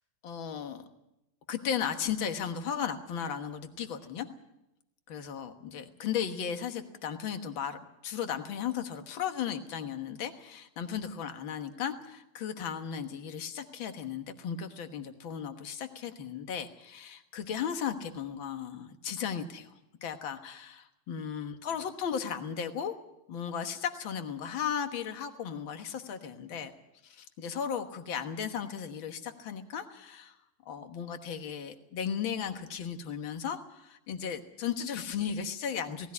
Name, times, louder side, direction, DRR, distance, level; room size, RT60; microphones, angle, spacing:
voice 1, 0.2-0.9 1.5-4.3 5.1-22.9 23.3-26.7 27.0-30.3 30.6-36.1, left 8 dB, 55° left, 7 dB, 1.4 m, -36 dB
18.5 x 16.0 x 9.6 m, 0.89 s
omnidirectional pair, 3.9 m